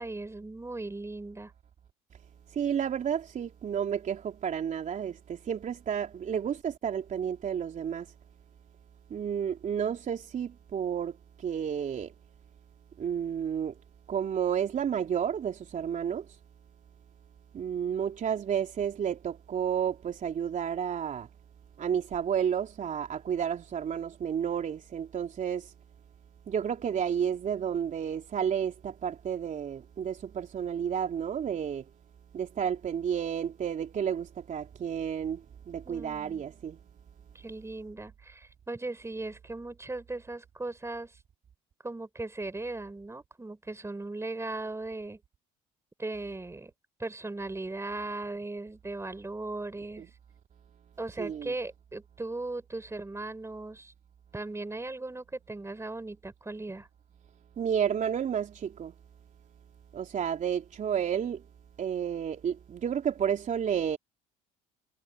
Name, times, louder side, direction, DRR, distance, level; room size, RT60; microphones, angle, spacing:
voice 1, 0.0-1.5 35.8-36.4 37.3-41.1 41.8-45.2 46.0-46.7 47.0-50.1 51.0-53.9 54.3-56.9, right 2 dB, 15° right, 6.3 m, -38 dB
voice 2, 2.5-8.1 9.1-12.1 13.0-13.7 14.1-16.3 17.5-21.3 21.8-25.7 26.5-31.8 32.3-36.8 50.0-50.1 51.2-51.5 57.6-58.9 59.9-61.4 61.8-64.0, right 8 dB, 45° right, 3.6 m, -31 dB
hypercardioid pair, 65°, 18 cm